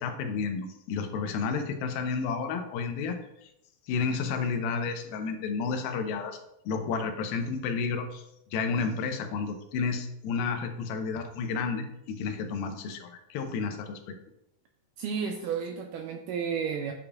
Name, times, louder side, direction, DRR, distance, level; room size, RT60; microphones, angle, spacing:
voice 1, 0.0-3.2 3.4-3.5 3.9-6.4 6.7-8.2 8.5-14.2, left 5 dB, 85° left, 6 dB, 2.6 m, -31 dB
voice 2, 15.0-16.9, right 6 dB, 85° right, 4 dB, 1.9 m, -32 dB
8.6 x 6.8 x 2.3 m, 0.82 s
omnidirectional pair, 4.3 m